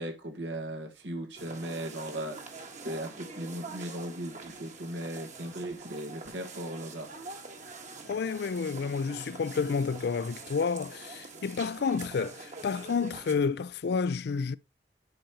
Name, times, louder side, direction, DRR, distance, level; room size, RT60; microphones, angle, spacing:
voice 1, 0.0-2.4 2.8-7.1, right 1 dB, 85° right, 1.7 m, -37 dB
sound 1, 1.4-13.3, right 4 dB, 45° right, 1.4 m, -45 dB
voice 2, 8.1-14.6, left 5 dB, 65° left, 0.4 m, -30 dB
10.5 x 4.9 x 2.9 m
head